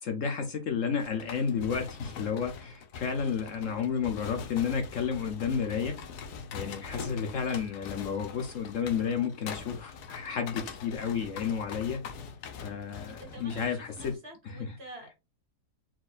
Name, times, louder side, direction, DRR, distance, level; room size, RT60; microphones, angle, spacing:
voice 1, 0.0-6.0 6.5-12.0 12.6-14.2 14.4-14.7, left 6 dB, 60° left, 1.0 m, -31 dB
sound 1, 1.0-14.1, left 6 dB, 85° left, 1.3 m, -43 dB
voice 2, 3.7-4.1 13.1-13.7 13.9-15.1, right 2 dB, 40° right, 2.0 m, -48 dB
4.5 x 4.2 x 2.5 m
omnidirectional pair, 1.6 m